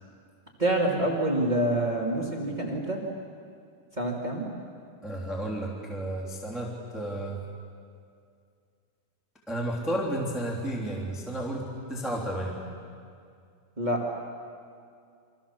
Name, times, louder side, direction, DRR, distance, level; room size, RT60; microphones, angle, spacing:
voice 1, 0.6-3.0 4.0-4.4 13.8-14.0, right 1 dB, 25° right, -1 dB, 0.8 m, -26 dB
voice 2, 5.0-7.4 9.5-12.6, right 1 dB, ahead, -2 dB, 2.1 m, -32 dB
28.5 x 25.0 x 7.2 m, 2.3 s
omnidirectional pair, 5.9 m